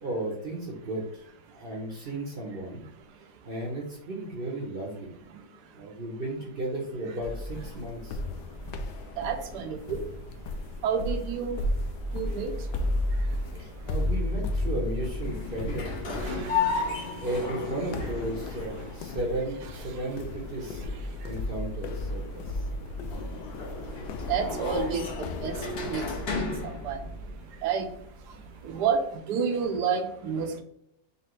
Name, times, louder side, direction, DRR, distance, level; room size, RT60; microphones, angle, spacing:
voice 1, 0.0-1.2 1.5-2.8 3.4-5.1 5.7-8.2 13.6-16.5 17.2-20.8 21.2-22.6, right 1 dB, 45° right, 0 dB, 0.8 m, -34 dB
sound 1, 7.2-26.7, left 1 dB, 80° left, 1.1 m, -34 dB
voice 2, 9.2-10.0 10.8-11.6 12.1-12.5 16.2-16.5 24.3-25.1 25.4-25.5 25.9-26.1 26.8-27.0 27.6-27.9 28.6-29.0 29.3-30.6, right 6 dB, 80° right, 7 dB, 1.2 m, -29 dB
sound 2, 12.1-29.1, left 4 dB, 45° left, 1.0 m, -36 dB
5.5 x 2.7 x 3.0 m, 0.73 s
omnidirectional pair, 1.8 m